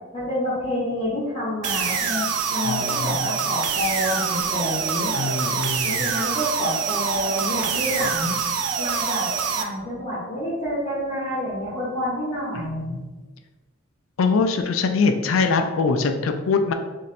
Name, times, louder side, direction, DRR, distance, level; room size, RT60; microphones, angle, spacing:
voice 1, 0.1-5.1 5.8-8.4 8.8-9.3 9.6-12.9, left 1 dB, 25° left, -9 dB, 0.9 m, -28 dB
sound 1, 1.6-9.6, right 6 dB, 85° right, 0.4 m, -25 dB
voice 2, 2.6-3.3 5.1-6.1 12.5-13.2 14.2-16.7, left 4 dB, 70° left, 6 dB, 0.4 m, -23 dB
3.1 x 2.7 x 4.1 m, 1.2 s
head